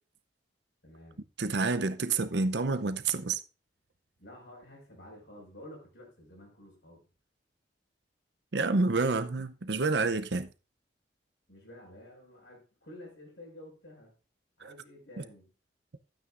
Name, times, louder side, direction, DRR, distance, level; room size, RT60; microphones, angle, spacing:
voice 1, 0.8-1.3 4.2-7.0 11.5-14.2 14.6-15.5, left 1 dB, 70° left, 5.4 m, -51 dB
voice 2, 1.4-3.4 8.5-10.5 14.6-14.7, right 3 dB, 65° right, 0.7 m, -28 dB
12.5 x 8.9 x 2.5 m
head